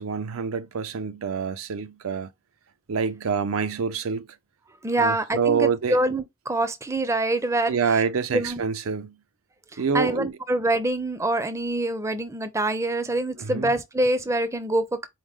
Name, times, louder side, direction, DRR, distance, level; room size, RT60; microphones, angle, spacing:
voice 1, 0.0-2.3 2.9-4.3 5.0-6.0 7.7-9.1 9.8-10.4 13.4-13.7, right 6 dB, 85° right, 0.5 m, -26 dB
voice 2, 4.8-7.7 8.3-8.6 9.7-15.1, right 1 dB, 15° right, 0.5 m, -25 dB
4.7 x 2.0 x 3.5 m
head